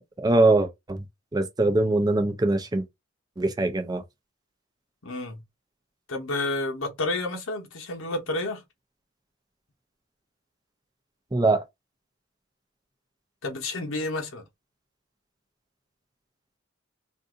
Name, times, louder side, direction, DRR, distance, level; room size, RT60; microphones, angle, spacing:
voice 1, 0.2-1.0 1.3-2.8 3.4-4.0 11.3-11.6, right 2 dB, 20° right, 0.5 m, -22 dB
voice 2, 5.0-5.4 6.1-8.6 13.4-14.4, left 2 dB, 90° left, 1.0 m, -30 dB
2.6 x 2.6 x 3.7 m
head